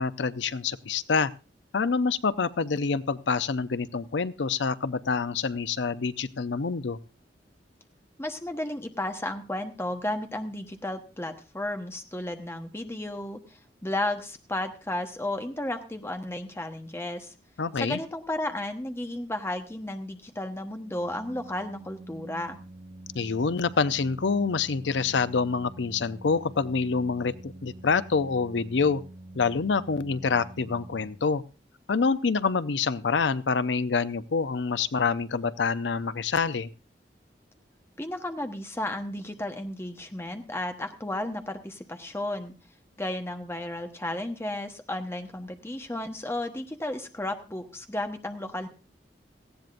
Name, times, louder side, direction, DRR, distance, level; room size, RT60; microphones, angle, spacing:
voice 1, 0.0-1.3 1.7-7.0 17.6-18.0 23.1-29.0 29.3-31.4 31.9-36.7, left 5 dB, 90° left, 15 dB, 0.6 m, -26 dB
voice 2, 8.2-17.3 17.8-22.6 38.0-42.5 43.0-48.7, left 1 dB, 15° left, 6 dB, 1.1 m, -33 dB
Organ, 20.8-31.6, right 1 dB, 40° right, 1.2 m, -46 dB
18.5 x 15.0 x 2.6 m, 0.31 s
head